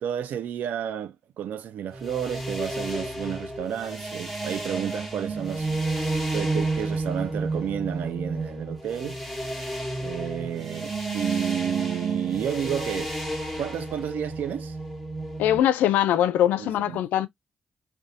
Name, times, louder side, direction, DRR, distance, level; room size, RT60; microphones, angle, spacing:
voice 1, 0.0-5.7 6.3-9.2 10.0-13.1 13.6-14.8 16.6-17.0, right 9 dB, 75° right, 0.3 m, -31 dB
sound 1, 1.9-15.6, right 2 dB, ahead, 0.9 m, -31 dB
voice 2, 15.4-17.3, left 11 dB, 90° left, 0.3 m, -22 dB
2.6 x 2.2 x 2.5 m
cardioid pair, 65°, 3 cm